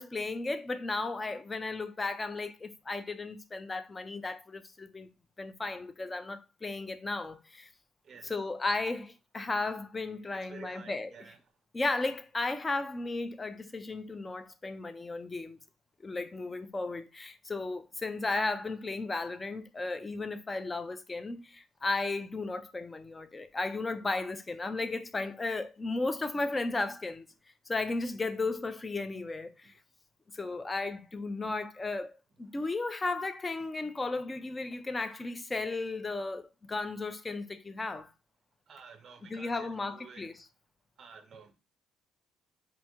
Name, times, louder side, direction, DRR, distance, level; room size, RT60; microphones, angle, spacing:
voice 1, 0.0-5.1 5.4-7.7 8.2-11.1 11.7-15.6 16.0-27.3 27.7-29.7 30.3-38.1 39.3-40.3, left 3 dB, 15° left, 0.3 m, -35 dB
voice 2, 8.0-8.4 10.3-11.4 38.7-40.3 41.0-41.5, right 6 dB, 35° right, 0.5 m, -51 dB
3.3 x 2.6 x 2.9 m
cardioid pair, 150°, 0 cm